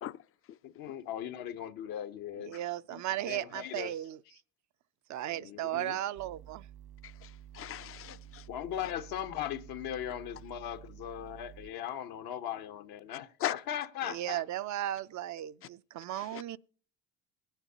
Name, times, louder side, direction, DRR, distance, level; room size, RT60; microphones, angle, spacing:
voice 1, 0.6-2.5 2.9-3.9 5.3-6.0 8.0-8.2 8.5-14.4, left 10 dB, 65° left, 0.9 m, -39 dB
voice 2, 2.4-4.2 5.1-6.6 14.0-16.6, right 13 dB, 50° right, 0.4 m, -36 dB
sound 1, 6.2-11.7, right 10 dB, 75° right, 1.4 m, -51 dB
voice 3, 7.5-8.4 13.4-13.5 16.2-16.4, left 12 dB, 40° left, 0.4 m, -37 dB
22.0 x 9.1 x 2.8 m
hypercardioid pair, 60°, 38 cm